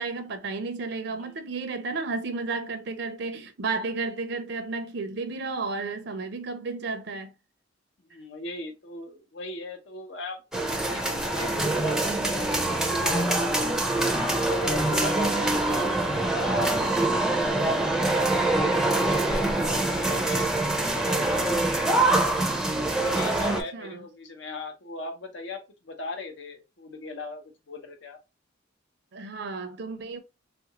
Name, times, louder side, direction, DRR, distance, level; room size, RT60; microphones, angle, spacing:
voice 1, 0.0-7.3 23.5-24.0 29.1-30.2, right 3 dB, 60° right, 0.5 m, -32 dB
voice 2, 8.0-13.8 14.3-17.0 17.3-22.1 22.9-28.2, left 2 dB, 65° left, 0.7 m, -39 dB
sound 1, 10.5-23.6, right 2 dB, 5° right, 0.5 m, -24 dB
3.5 x 2.5 x 2.8 m
head